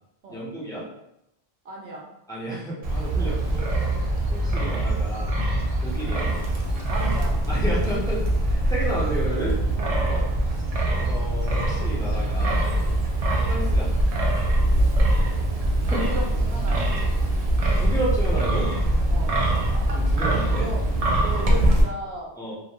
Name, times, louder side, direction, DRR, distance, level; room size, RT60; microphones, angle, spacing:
voice 1, 0.3-0.8 2.3-3.7 4.0-5.4 5.8-6.3 7.5-9.6 11.0-12.7 13.5-13.9 15.9-16.1 17.3-17.4 17.8-18.7 19.9-20.7 22.4-22.5, right 1 dB, 5° left, -7 dB, 0.5 m, -31 dB
voice 2, 1.6-2.1 3.2-3.4 6.9-7.4 9.8-10.3 13.2-13.4 15.4-15.6 15.9-16.9 19.1-19.4 20.5-20.8 21.2-22.4, right 1 dB, 70° right, -1 dB, 0.9 m, -36 dB
Wind, 2.8-21.8, right 1 dB, 50° right, 0.4 m, -23 dB
2.5 x 2.2 x 2.8 m, 0.82 s
omnidirectional pair, 1.1 m